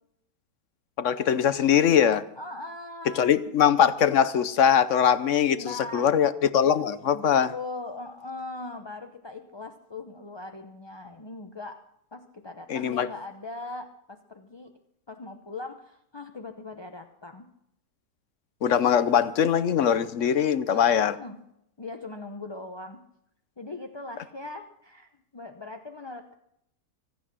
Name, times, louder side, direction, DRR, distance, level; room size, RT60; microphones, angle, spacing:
voice 1, 1.0-2.2 3.2-7.5 12.7-13.1 18.6-21.1, left 8 dB, 60° left, 14 dB, 0.9 m, -22 dB
voice 2, 2.4-3.3 5.5-6.2 7.1-11.8 12.1-14.7 15.1-17.5 20.7-21.4 21.8-23.0 23.6-26.3, left 2 dB, 30° left, 5 dB, 0.5 m, -40 dB
25.0 x 8.7 x 6.1 m, 0.77 s
omnidirectional pair, 1.7 m